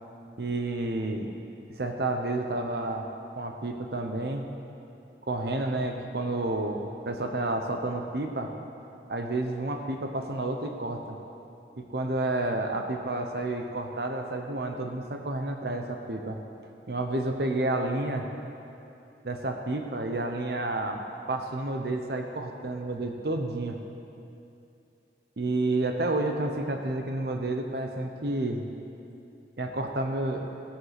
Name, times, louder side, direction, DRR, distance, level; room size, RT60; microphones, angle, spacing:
voice 1, 0.4-1.3 1.8-3.1 3.3-4.5 5.3-8.5 9.1-11.2 11.9-16.4 16.9-18.3 19.2-21.0 21.3-23.8 25.4-28.6 29.6-30.5, right 2 dB, 60° right, 4 dB, 0.9 m, -30 dB
17.0 x 8.1 x 5.9 m, 2.7 s
head